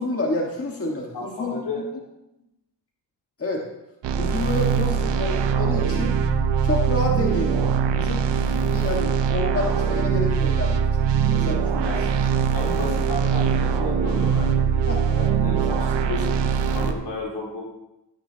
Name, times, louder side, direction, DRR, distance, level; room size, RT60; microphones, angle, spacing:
voice 1, 0.0-1.8 3.4-3.6 4.1-6.1 6.6-12.0 14.9-15.0, left 2 dB, 35° left, 0 dB, 1.6 m, -29 dB
voice 2, 1.1-1.8 11.8-17.6, left 2 dB, 75° left, -3 dB, 4.0 m, -33 dB
sound 1, 4.0-16.9, right 6 dB, 90° right, 0.8 m, -22 dB
12.5 x 10.5 x 2.8 m, 0.91 s
cardioid pair, 55°, 41 cm